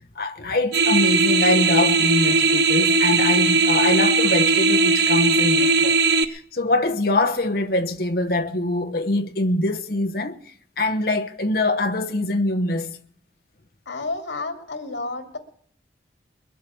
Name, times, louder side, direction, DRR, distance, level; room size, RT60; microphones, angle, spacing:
voice 1, 0.1-6.0 6.2-10.4 10.8-13.0, left 2 dB, 55° left, 1.1 m, -24 dB
sound 1, 0.7-6.2, right 3 dB, 65° right, 1.0 m, -18 dB
voice 2, 13.9-15.4, left 3 dB, 85° left, 2.5 m, -30 dB
22.0 x 7.5 x 8.5 m
head